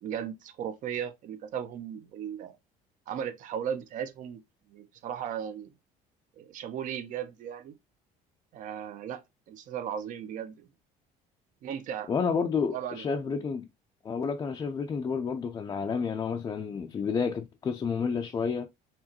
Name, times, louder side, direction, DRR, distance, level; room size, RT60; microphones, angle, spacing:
voice 1, 0.0-2.5 3.1-4.4 4.7-5.7 6.4-7.7 8.5-9.2 9.5-10.7 11.6-12.1 12.7-13.5, right 9 dB, 55° right, 0.8 m, -36 dB
voice 2, 12.1-13.7 14.0-18.7, left 5 dB, 25° left, 0.4 m, -30 dB
4.7 x 3.0 x 2.9 m
cardioid pair, 155°, 16 cm